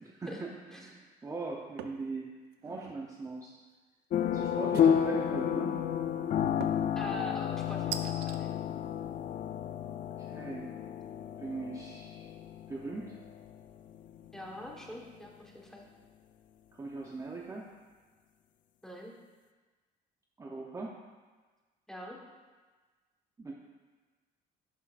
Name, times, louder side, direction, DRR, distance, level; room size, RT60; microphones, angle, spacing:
voice 1, 0.0-2.3 2.6-3.5 4.3-5.8 9.9-10.7 11.4-12.3 12.7-13.1 16.7-17.7 20.4-20.9 23.4-23.5, right 3 dB, 20° right, -2 dB, 0.7 m, -40 dB
sound 1, 1.8-2.1 2.5-3.0 4.7-5.3 6.6-7.0 7.9-8.4, right 10 dB, 90° right, 0.5 m, -41 dB
sound 2, 4.1-14.9, left 9 dB, 50° left, 0.4 m, -31 dB
voice 2, 7.0-8.5 14.3-15.8 18.8-19.1 21.9-22.2, left 1 dB, 5° left, -1 dB, 1.2 m, -43 dB
11.0 x 5.6 x 2.5 m, 1.3 s
cardioid pair, 110°, 17 cm